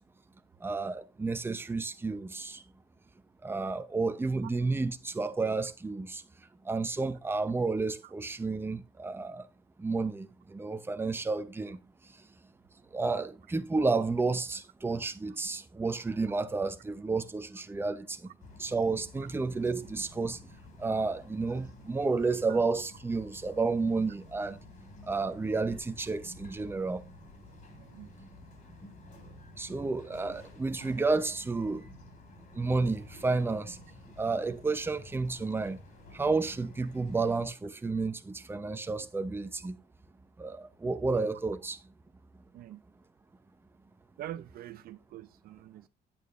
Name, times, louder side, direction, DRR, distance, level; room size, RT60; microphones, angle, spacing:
voice 1, 0.6-2.6 3.4-6.2 6.7-9.4 9.8-10.3 10.5-11.8 12.9-18.2 18.6-20.4 20.8-24.6 25.1-27.0 29.6-31.8 32.6-33.8 34.2-35.8 36.1-39.7 40.4-41.8, right 3 dB, 15° right, 0.8 m, -31 dB
Bird vocalization bird call bird song, 18.4-37.5, left 2 dB, 50° left, 3.9 m, -52 dB
voice 2, 27.8-28.1 42.5-42.8 44.2-45.9, right 12 dB, 60° right, 0.5 m, -45 dB
9.0 x 8.8 x 3.1 m
cardioid pair, 110°, 17 cm